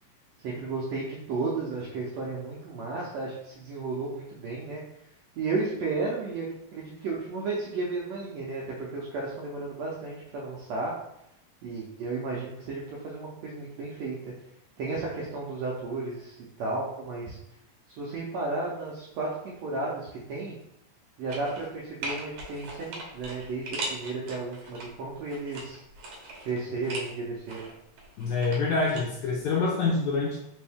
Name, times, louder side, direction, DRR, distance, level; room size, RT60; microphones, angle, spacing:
voice 1, 0.4-4.8 5.4-6.5 6.7-10.9 11.6-14.2 14.8-17.4 18.0-20.5 21.2-25.8 26.4-27.7, right 3 dB, 80° right, -4 dB, 1.5 m, -33 dB
sound 1, 21.3-21.7 22.0-24.9 25.3-27.1 27.5-29.0 29.3-29.4, right 2 dB, 65° right, 1.8 m, -39 dB
voice 2, 28.2-30.4, left 3 dB, 80° left, -1 dB, 1.7 m, -26 dB
5.2 x 2.6 x 3.5 m, 0.81 s
omnidirectional pair, 3.8 m